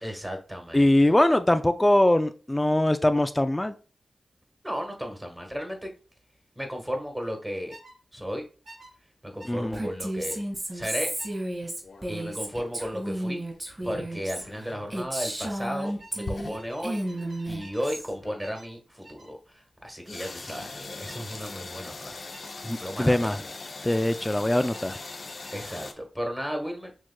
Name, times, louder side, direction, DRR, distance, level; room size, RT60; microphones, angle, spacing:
voice 1, 0.0-1.1 4.6-5.9 6.5-7.7 8.1-8.4 9.2-10.4 10.7-11.1 12.1-13.4 13.8-17.0 17.5-22.3 22.8-23.5 25.5-26.9, equal, 10° right, 3 dB, 1.4 m, -34 dB
voice 2, 0.7-3.7 9.5-9.8 22.6-23.4 23.8-24.9, left 1 dB, 20° left, 9 dB, 0.4 m, -22 dB
sound 1, 7.7-8.0 8.7-8.9 9.4-9.6 10.3-10.5 11.2-11.4 12.5-12.7 14.2-14.4 14.7-15.1 16.0-17.9 18.4-18.8 19.0-19.3 20.2-20.7 21.1-21.4 22.3-22.6 24.4-25.7, right 1 dB, 75° right, 1.8 m, -51 dB
Female speech woman speaking, 9.7-16.6 16.8-18.1, right 1 dB, 30° right, 2.2 m, -33 dB
sound 2, 11.8-13.1 14.0-15.0 15.7-17.6 18.1-18.5 20.1-25.9, left 3 dB, 65° left, 0.7 m, -41 dB
6.4 x 2.9 x 2.3 m, 0.37 s
cardioid pair, 40°, 0 cm